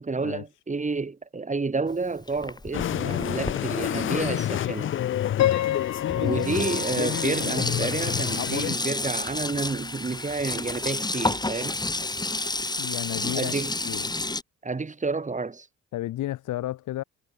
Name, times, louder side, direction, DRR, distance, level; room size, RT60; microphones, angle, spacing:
voice 1, 0.0-4.9 6.2-11.8 13.2-13.7 14.6-15.7, right 4 dB, 25° right, 3.7 m, -30 dB
Sink (filling or washing), 1.9-5.0 5.8-5.9 6.1-14.4, left 2 dB, 15° left, 2.2 m, -31 dB
sound 1, 2.7-8.8, left 11 dB, 45° left, 0.4 m, -29 dB
Piano, 5.4-8.4, left 12 dB, 60° left, 0.9 m, -29 dB
voice 2, 12.8-13.5 13.8-14.1 15.9-17.0, left 14 dB, 85° left, 2.6 m, -32 dB
cardioid pair, 90°, 30 cm